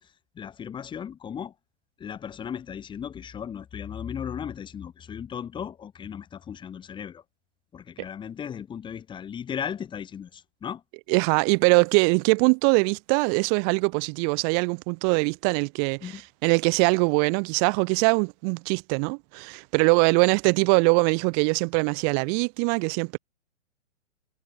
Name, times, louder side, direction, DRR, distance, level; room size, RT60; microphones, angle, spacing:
voice 1, 0.0-1.5 2.0-7.2 7.7-10.8 16.0-16.2, left 8 dB, 10° left, 2.1 m, -36 dB
voice 2, 11.1-16.1 16.4-23.2, right 40 dB or more, 30° right, 1.9 m, -22 dB
figure-of-eight pair, 120°, 38 cm